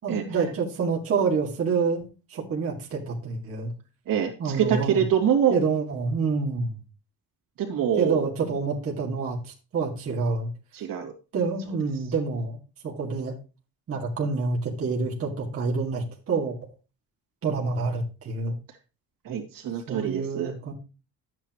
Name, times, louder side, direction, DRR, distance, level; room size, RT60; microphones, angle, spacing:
voice 1, 0.0-2.0 2.3-3.7 4.4-5.0 5.5-6.8 8.0-9.4 9.7-10.5 11.3-12.6 12.8-13.3 13.9-16.6 17.4-18.5 19.9-20.7, right 4 dB, 40° right, -2 dB, 2.4 m, -27 dB
voice 2, 4.1-5.6 7.6-8.3 10.7-11.1 19.2-20.5, right 8 dB, 70° right, 2 dB, 2.6 m, -25 dB
13.0 x 8.9 x 3.1 m, 0.33 s
cardioid pair, 155°, 35 cm